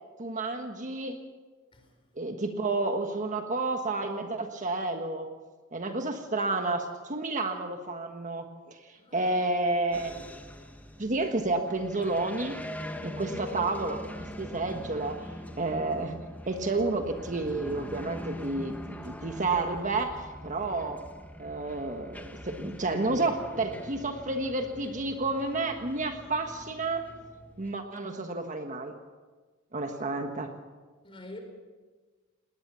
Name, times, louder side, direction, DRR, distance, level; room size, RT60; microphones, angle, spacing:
voice 1, 0.2-1.2 2.2-5.3 5.7-10.1 11.0-12.6 13.0-15.3 15.6-16.2 16.5-21.0 21.4-27.1 27.6-28.9 29.7-30.5, right 2 dB, 35° right, 1.4 m, -30 dB
voice 2, 9.0-9.3 31.0-31.4, left 2 dB, 25° left, 4.5 m, -46 dB
sound 1, 9.9-27.7, left 1 dB, 10° left, 1.2 m, -43 dB
19.5 x 19.5 x 6.9 m
head